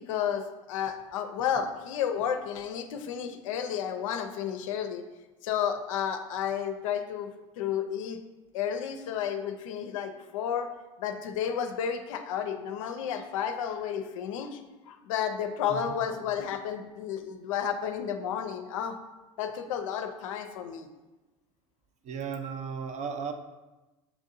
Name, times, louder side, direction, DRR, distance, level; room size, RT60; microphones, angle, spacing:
voice 1, 0.0-5.0 5.4-7.3 7.6-8.2 8.5-10.7 11.0-14.6 14.9-19.0 19.4-20.9, left 8 dB, 80° left, 7 dB, 0.5 m, -32 dB
voice 2, 22.0-23.3, right 6 dB, 45° right, 6 dB, 0.6 m, -35 dB
7.1 x 2.7 x 2.6 m, 1.1 s
hypercardioid pair, 75°, 17 cm